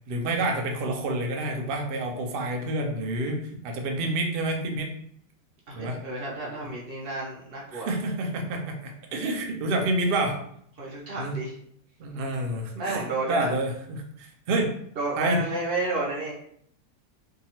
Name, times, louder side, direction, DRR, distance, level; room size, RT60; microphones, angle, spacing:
voice 1, 0.1-4.9 5.8-6.0 7.7-10.4 11.2-11.4 12.0-14.7 15.2-15.4, right 2 dB, 75° right, 2 dB, 0.5 m, -28 dB
voice 2, 5.7-7.9 10.8-11.5 12.8-13.5 15.0-16.3, right 2 dB, 45° right, -4 dB, 0.9 m, -31 dB
2.7 x 2.3 x 2.9 m, 0.67 s
omnidirectional pair, 1.6 m